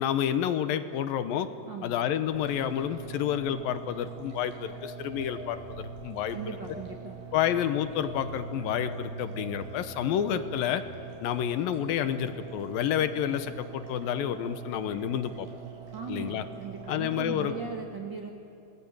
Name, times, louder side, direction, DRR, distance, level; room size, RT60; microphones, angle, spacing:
voice 1, 0.0-1.5 1.8-6.4 7.3-10.8 11.2-15.5 16.1-16.4 16.9-17.5, left 10 dB, 80° left, 10 dB, 2.7 m, -29 dB
voice 2, 1.7-2.0 6.3-7.2 15.9-18.3, right 5 dB, 45° right, 1 dB, 1.7 m, -38 dB
sound 1, 2.3-17.7, right 6 dB, 85° right, 6.9 m, -45 dB
Telephone, 4.8-7.1 7.5-10.6, equal, 55° left, 1.0 m, -43 dB
26.5 x 20.5 x 8.9 m, 2.8 s
omnidirectional pair, 4.2 m